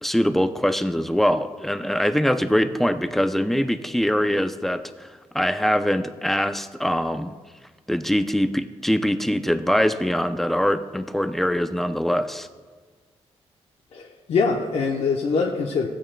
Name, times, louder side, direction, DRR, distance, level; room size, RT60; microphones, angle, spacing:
voice 1, 0.0-5.1 5.3-7.3 7.9-12.5, equal, ahead, 9 dB, 0.5 m, -23 dB
voice 2, 13.9-15.9, left 4 dB, 65° left, 0 dB, 0.8 m, -23 dB
15.5 x 8.8 x 2.2 m, 1.4 s
cardioid pair, 105°, 11 cm